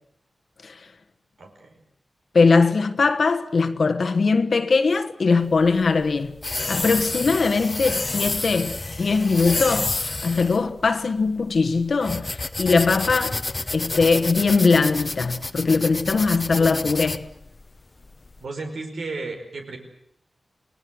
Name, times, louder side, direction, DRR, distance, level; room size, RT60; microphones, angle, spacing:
voice 1, 1.4-1.7 16.6-16.7 18.4-19.8, right 3 dB, 85° right, 5.1 m, -33 dB
voice 2, 2.3-6.4 6.7-13.4 13.7-17.3, left 4 dB, 65° left, 1.3 m, -21 dB
sound 1, 5.4-18.4, left 2 dB, 35° left, 1.0 m, -30 dB
28.5 x 19.0 x 7.9 m
wide cardioid pair, 110°, 0 cm